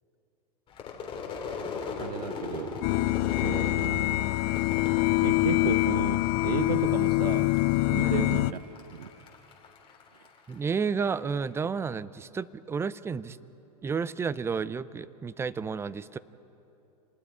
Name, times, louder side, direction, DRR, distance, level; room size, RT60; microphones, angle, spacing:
Crowd / Fireworks, 0.7-6.1 6.4-7.0 7.3-10.9, left 4 dB, 25° left, 3.6 m, -38 dB
voice 1, 2.0-2.8 3.4-4.3 5.2-7.6 7.9-8.6 9.0-9.1, right 8 dB, 85° right, 11 dB, 0.8 m, -34 dB
sound 1, 2.8-8.5, left 20 dB, 45° left, 0.5 m, -25 dB
voice 2, 10.5-13.4 13.8-16.2, right 5 dB, 15° right, 17 dB, 0.5 m, -31 dB
28.0 x 20.0 x 4.7 m, 2.9 s
hypercardioid pair, 115°, 20 cm